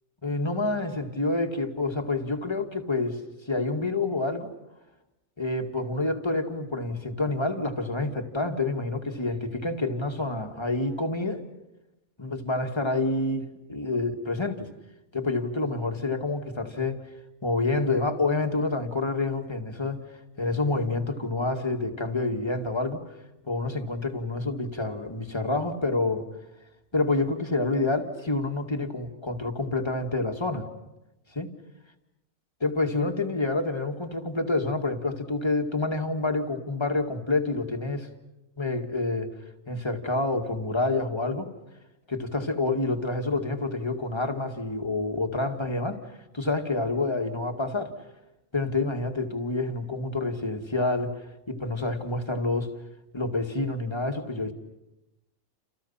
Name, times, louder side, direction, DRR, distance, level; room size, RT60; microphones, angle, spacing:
voice 1, 0.2-3.2 3.5-4.5 5.4-11.4 12.2-14.7 15.1-17.0 17.4-20.0 20.4-23.0 23.5-26.3 26.9-30.7 31.3-31.5 32.6-38.1 38.6-39.3 39.7-41.5 42.1-46.0 46.3-47.9 48.5-51.1 51.5-52.7 53.1-54.5, left 2 dB, 20° left, 4 dB, 2.2 m, -28 dB
29.5 x 29.5 x 5.8 m, 0.96 s
omnidirectional pair, 1.4 m